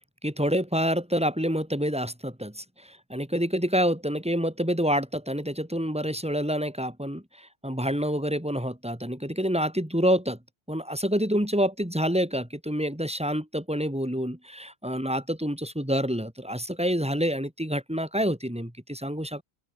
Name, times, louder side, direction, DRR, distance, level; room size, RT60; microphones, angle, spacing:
voice 1, 0.2-2.6 3.1-7.2 7.6-10.4 10.7-19.4, equal, 5° right, 2.6 m, -27 dB
open air
omnidirectional pair, 1.1 m